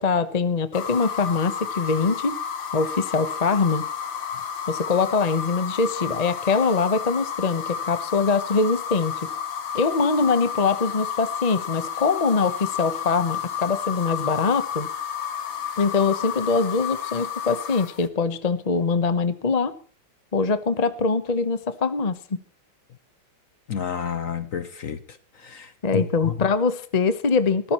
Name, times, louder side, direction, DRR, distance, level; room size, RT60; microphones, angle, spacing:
voice 1, 0.0-2.4 2.7-3.8 4.7-9.3 9.7-14.9 15.8-19.7 20.3-22.4 25.8-27.7, left 4 dB, 35° left, 0.6 m, -23 dB
sound 1, 0.7-18.1, left 8 dB, 65° left, 2.3 m, -31 dB
voice 2, 23.7-25.0 25.4-26.3, left 8 dB, 50° left, 1.1 m, -30 dB
23.0 x 14.5 x 3.1 m
omnidirectional pair, 2.3 m